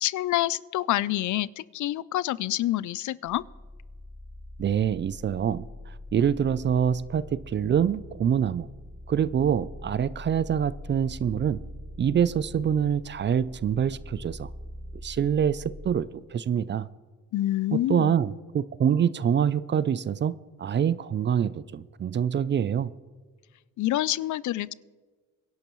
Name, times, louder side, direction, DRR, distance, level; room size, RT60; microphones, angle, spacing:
voice 1, 0.0-3.4 17.3-18.1 23.8-24.7, left 15 dB, 65° left, 20 dB, 0.4 m, -27 dB
sound 1, 3.2-15.9, left 1 dB, 15° right, 2.5 m, -43 dB
voice 2, 4.6-5.7 6.1-8.7 9.1-11.6 12.0-14.5 15.0-16.9 17.7-22.9, right 8 dB, 35° right, 18 dB, 0.4 m, -25 dB
23.5 x 11.5 x 3.1 m, 1.4 s
cardioid pair, 95°, 33 cm